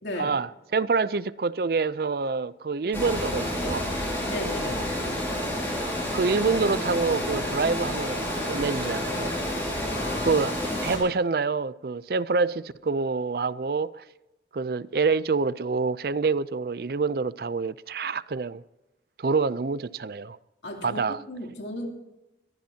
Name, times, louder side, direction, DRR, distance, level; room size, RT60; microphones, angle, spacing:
voice 1, 0.0-0.3 4.2-4.8 9.9-10.4 20.6-21.9, left 1 dB, 80° left, 3.0 m, -35 dB
voice 2, 0.7-3.9 6.1-9.4 10.2-10.5 10.8-14.0 14.5-18.6 19.2-20.4 20.8-21.2, right 4 dB, 55° right, 0.5 m, -26 dB
Water, 2.9-11.0, left 1 dB, 10° left, 6.0 m, -29 dB
22.0 x 15.0 x 2.8 m
head